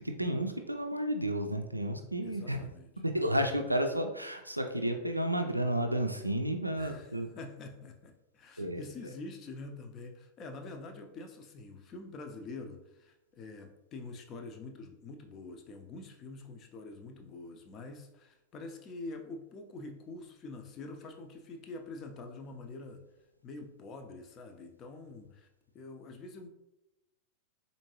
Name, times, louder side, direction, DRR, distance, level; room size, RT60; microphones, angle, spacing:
voice 1, 0.0-2.6 3.1-7.3 8.6-8.8, right 1 dB, 85° right, 4 dB, 0.3 m, -32 dB
voice 2, 2.2-2.9 6.8-23.1 23.4-25.5 25.7-26.5, left 3 dB, 30° left, 5 dB, 0.6 m, -46 dB
4.4 x 2.7 x 2.9 m, 0.91 s
figure-of-eight pair, 90°, 0 cm